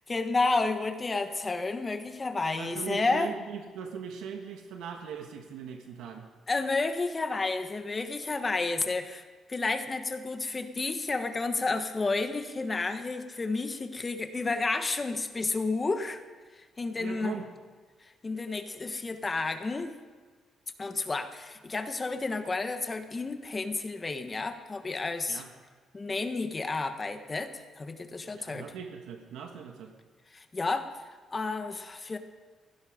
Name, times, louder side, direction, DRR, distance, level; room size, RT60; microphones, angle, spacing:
voice 1, 0.1-3.3 6.5-9.2 9.5-16.2 16.8-17.3 18.2-19.9 20.8-25.4 25.9-28.7 30.3-30.9 31.3-32.2, left 3 dB, 30° left, 8 dB, 1.3 m, -31 dB
voice 2, 2.6-6.3 16.9-17.5 25.3-25.5 28.3-29.9, right 6 dB, 90° right, 4 dB, 1.5 m, -40 dB
16.5 x 16.0 x 5.1 m, 1.4 s
cardioid pair, 90°, 0 cm